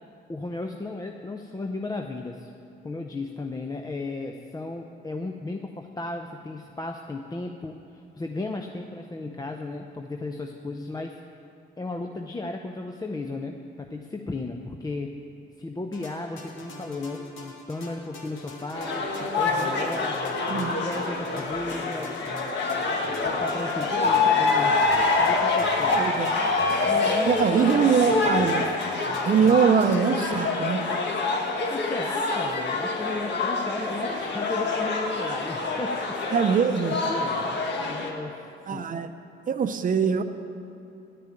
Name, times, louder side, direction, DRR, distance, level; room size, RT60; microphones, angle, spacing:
voice 1, 0.3-2.5 2.8-11.1 11.8-15.2 15.6-20.2 20.5-22.4 23.0-24.8 25.2-26.1 26.8-28.3 31.7-36.4 37.1-38.4 38.7-38.8, left 2 dB, 20° left, 3 dB, 0.6 m, -35 dB
sound 1, 15.9-31.3, left 2 dB, 80° left, 1.8 m, -44 dB
sound 2, 18.7-38.1, left 3 dB, 60° left, 1.5 m, -26 dB
voice 2, 26.0-26.3 27.3-28.6 29.2-30.8 36.3-37.0 38.7-39.1 39.5-40.2, right 6 dB, 45° right, 9 dB, 0.7 m, -22 dB
10.5 x 6.7 x 8.9 m, 2.8 s
cardioid pair, 90°, 20 cm